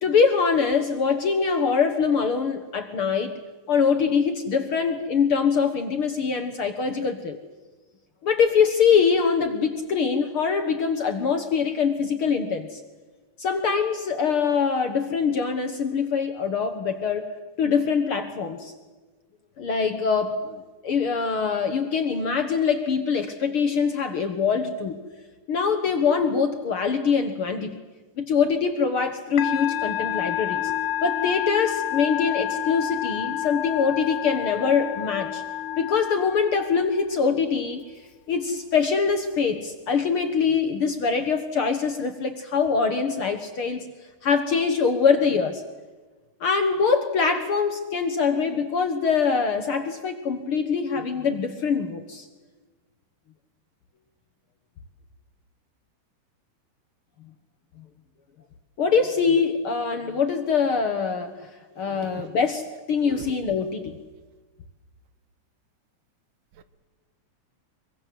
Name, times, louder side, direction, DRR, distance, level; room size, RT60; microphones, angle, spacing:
voice 1, 0.0-3.4 3.7-7.4 8.2-12.8 13.4-17.3 17.6-18.7 19.6-25.0 25.5-27.8 28.2-30.7 31.0-35.4 35.8-37.8 38.3-43.9 44.2-45.6 46.4-52.3 58.8-61.5 61.8-64.0, left 5 dB, 55° left, 8 dB, 1.7 m, -23 dB
Musical instrument, 29.4-37.0, left 12 dB, 75° left, 2.4 m, -29 dB
voice 2, 61.8-62.2 63.0-63.3 66.6-66.7, right 8 dB, 75° right, 12 dB, 2.7 m, -39 dB
24.5 x 24.0 x 7.9 m, 1.3 s
omnidirectional pair, 3.8 m